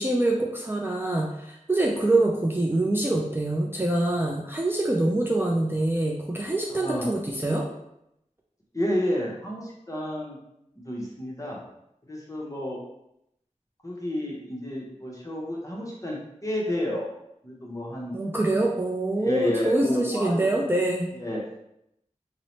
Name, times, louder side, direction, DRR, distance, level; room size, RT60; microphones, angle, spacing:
voice 1, 0.0-7.7 18.1-21.1, right 2 dB, 15° right, -2 dB, 0.3 m, -25 dB
voice 2, 6.7-7.1 8.7-10.4 10.8-11.6 12.0-12.8 13.8-17.1 17.4-18.2 19.2-20.5 21.1-21.4, left 1 dB, 25° left, -3 dB, 0.8 m, -31 dB
2.7 x 2.0 x 2.9 m, 0.81 s
wide cardioid pair, 40°, 13 cm